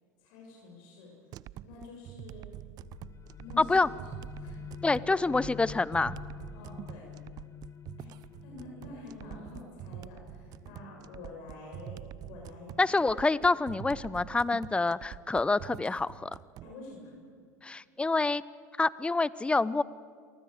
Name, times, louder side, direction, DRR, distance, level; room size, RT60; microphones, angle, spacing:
voice 1, 0.2-1.1 1.6-2.5 3.4-3.8 4.4-4.6 6.5-7.1 8.0-8.1 8.4-12.7 16.6-17.1, left 3 dB, 60° left, -1 dB, 7.1 m, -47 dB
sound 1, 1.3-16.7, right 14 dB, 50° right, 0.7 m, -46 dB
sound 2, 2.8-14.2, left 8 dB, 35° left, 1.4 m, -48 dB
voice 2, 3.6-3.9 4.8-6.2 12.8-16.3 17.6-18.4 18.8-19.8, left 3 dB, 10° left, 19 dB, 0.8 m, -27 dB
28.5 x 24.0 x 8.0 m, 2.1 s
hypercardioid pair, 80°, 9 cm